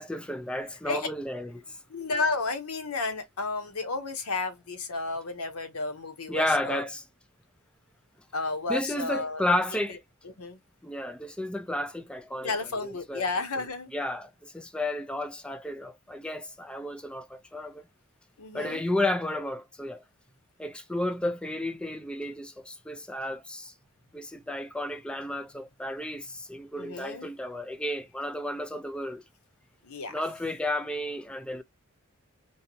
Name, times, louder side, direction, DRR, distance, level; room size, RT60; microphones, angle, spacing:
voice 1, 0.0-1.8 6.3-7.0 8.7-10.0 10.8-12.5 12.8-13.2 13.9-17.8 18.5-20.0 20.6-23.7 24.1-29.2 30.1-31.6, left 1 dB, 5° left, 0.4 m, -32 dB
voice 2, 1.9-6.9 8.3-9.4 10.4-10.6 12.4-13.9 18.4-18.8 26.8-27.3 29.8-30.2, left 3 dB, 85° left, 1.0 m, -32 dB
4.6 x 2.7 x 2.8 m
head